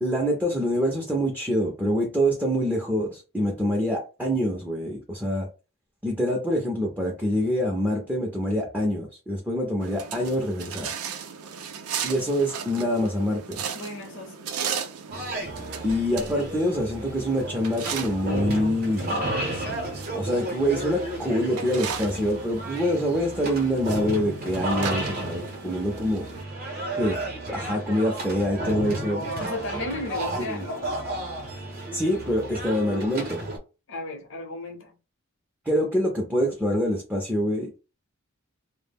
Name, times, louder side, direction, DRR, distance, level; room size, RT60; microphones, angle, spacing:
voice 1, 0.0-5.5 6.0-10.9 12.0-13.6 15.8-19.4 20.1-26.2 27.0-27.2 27.5-29.3 30.4-30.7 31.9-33.4 35.7-37.7, equal, 5° right, 0.4 m, -25 dB
sound 1, 9.8-26.4, right 7 dB, 85° right, 0.4 m, -37 dB
voice 2, 13.8-14.4 29.4-30.8 33.9-34.9, left 2 dB, 55° left, 0.6 m, -34 dB
sound 2, 15.1-33.6, right 1 dB, 45° right, 0.7 m, -33 dB
2.1 x 2.0 x 3.4 m
head